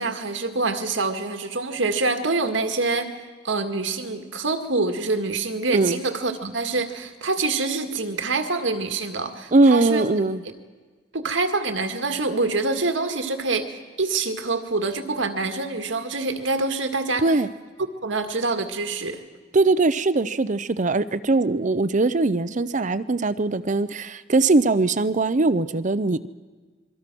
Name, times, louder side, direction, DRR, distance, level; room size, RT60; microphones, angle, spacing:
voice 1, 0.0-3.1 3.4-10.1 10.4-10.5 11.1-17.2 18.0-19.2, right 3 dB, 80° right, 6 dB, 2.0 m, -26 dB
voice 2, 9.5-10.4 17.2-17.5 19.5-26.3, right 3 dB, 40° right, 14 dB, 0.7 m, -21 dB
26.5 x 23.0 x 6.2 m, 1.4 s
head